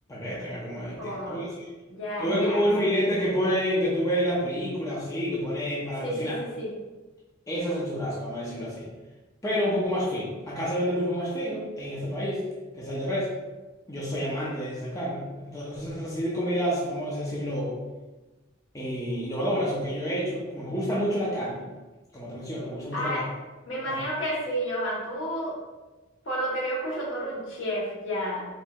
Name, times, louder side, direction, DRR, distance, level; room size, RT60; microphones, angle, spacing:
voice 1, 0.1-1.7 2.2-6.4 7.5-8.9 9.4-12.4 12.7-13.3 13.9-17.7 18.7-21.7 22.1-23.2 23.8-24.0, equal, 15° left, -7 dB, 0.7 m, -29 dB
voice 2, 1.0-1.4 1.9-2.6 6.0-6.7 22.9-23.2 23.7-25.5 26.2-28.5, equal, 65° left, -5 dB, 1.1 m, -31 dB
4.4 x 3.2 x 2.4 m, 1.2 s
head